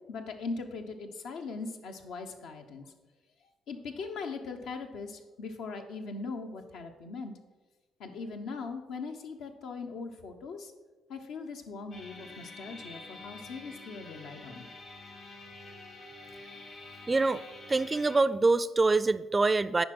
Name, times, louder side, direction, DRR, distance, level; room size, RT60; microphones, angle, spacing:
voice 1, 0.1-2.9 3.7-7.3 8.0-10.7 11.1-14.7, left 4 dB, 85° left, 4 dB, 1.0 m, -40 dB
sound 1, 11.9-18.2, left 2 dB, 65° left, 2.6 m, -47 dB
voice 2, 17.1-17.4 17.7-19.8, right 3 dB, 25° right, 16 dB, 0.4 m, -25 dB
9.4 x 5.3 x 6.0 m, 1.2 s
cardioid pair, 90°, 0 cm